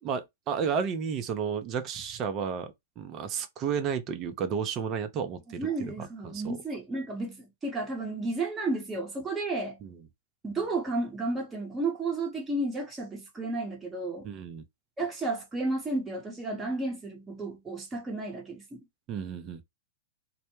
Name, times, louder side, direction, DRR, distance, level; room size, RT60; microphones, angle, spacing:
voice 1, 0.0-6.6 9.8-10.0 14.2-14.6 19.1-19.6, right 6 dB, 35° right, 0.5 m, -32 dB
voice 2, 5.6-9.8 10.4-14.3 15.0-18.8, right 2 dB, 15° right, 0.9 m, -32 dB
2.1 x 2.1 x 2.9 m
hypercardioid pair, 120°, 0 cm